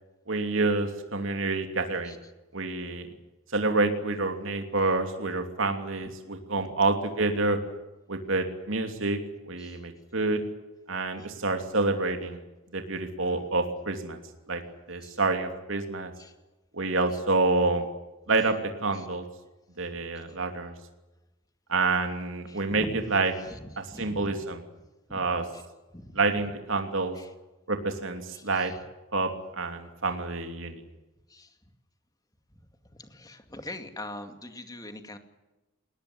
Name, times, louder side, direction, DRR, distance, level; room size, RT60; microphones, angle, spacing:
voice 1, 0.3-2.1 2.5-3.1 3.5-7.6 8.1-9.2 9.5-10.4 10.9-12.4 12.7-14.2 14.5-14.6 14.9-16.1 16.7-17.9 18.3-19.2 19.8-20.7 21.7-23.3 23.8-24.6 25.1-25.5 26.1-27.2 27.7-28.7 29.1-30.8, right 3 dB, 65° right, 5 dB, 2.9 m, -28 dB
voice 2, 22.5-23.0 23.5-23.6 23.9-24.3 25.1-25.2 25.5-25.6 25.9-26.2 27.1-27.3 28.3-28.7 31.3-31.5 33.0-35.2, left 1 dB, 15° left, 7 dB, 2.2 m, -42 dB
21.5 x 19.0 x 9.7 m, 1.0 s
head